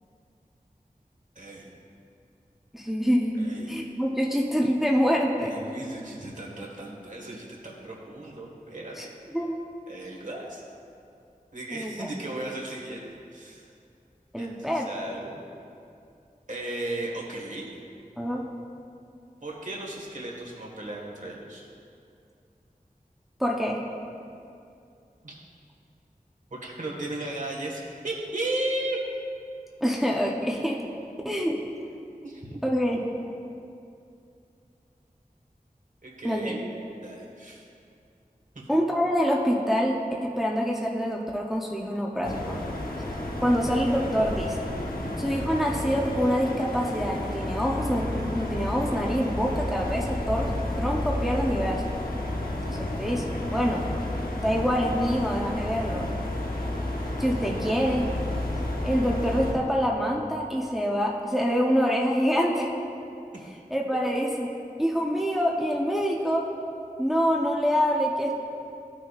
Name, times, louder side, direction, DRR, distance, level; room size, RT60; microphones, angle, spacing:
voice 1, 1.3-1.7 3.4-3.8 5.4-9.1 9.9-10.6 11.5-13.0 13.3-13.7 14.4-15.4 16.5-17.7 19.4-21.7 25.2-25.4 26.5-29.0 32.2-32.6 36.0-36.7 37.0-37.7 38.5-38.6 44.9-45.1, right 1 dB, 60° right, -3 dB, 1.5 m, -35 dB
voice 2, 2.7-3.4 3.7-5.5 9.0-9.1 9.3-9.6 11.7-12.1 14.3-14.9 18.2-18.4 23.4-23.8 29.8-30.8 31.2-31.6 32.6-33.0 36.2-36.6 38.7-40.0 40.2-42.6 43.4-44.7 45.2-50.5 50.8-51.8 52.5-53.2 53.5-53.8 54.4-56.1 57.2-58.1 58.8-62.7 63.7-64.5 64.8-66.5 67.0-68.3, equal, ahead, -2 dB, 0.7 m, -26 dB
sound 1, 42.2-59.5, left 1 dB, 85° left, 0.9 m, -31 dB
14.5 x 6.0 x 2.4 m, 2.5 s
wide cardioid pair, 45°, 15 cm